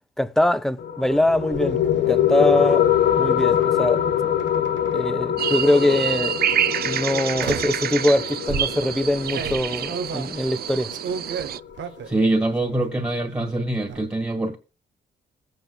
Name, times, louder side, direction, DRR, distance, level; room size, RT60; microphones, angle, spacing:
voice 1, 0.2-1.8 2.1-2.9 3.1-4.0 4.9-6.4 6.8-10.9, left 1 dB, ahead, 0.6 m, -22 dB
sound 1, 0.8-11.8, left 10 dB, 65° left, 1.1 m, -24 dB
sound 2, 1.1-1.7 3.4-3.6 4.4-5.2 6.0-6.3 7.4-7.9 8.5-12.2 12.6-13.1 13.4-14.0, right 5 dB, 75° right, 1.0 m, -34 dB
sound 3, 5.4-11.6, right 10 dB, 55° right, 0.4 m, -27 dB
voice 2, 12.1-14.6, right 2 dB, 15° right, 1.7 m, -24 dB
16.5 x 7.9 x 2.3 m
cardioid pair, 100°, 19 cm